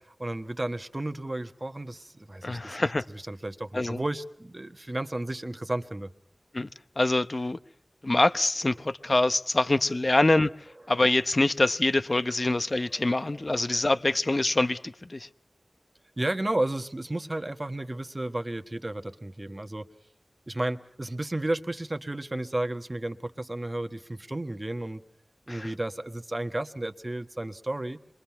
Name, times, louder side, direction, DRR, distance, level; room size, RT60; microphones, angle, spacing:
voice 1, 0.1-2.8 3.1-6.1 13.0-13.1 13.5-13.9 16.2-19.9 20.5-25.0 25.5-28.0, right 1 dB, 30° right, 1.3 m, -33 dB
voice 2, 2.4-3.0 3.7-4.0 6.5-6.7 7.0-7.6 8.0-10.5 10.9-15.3 25.5-25.7, left 2 dB, 45° left, 0.9 m, -25 dB
26.5 x 23.0 x 5.8 m
wide cardioid pair, 50°, 0 cm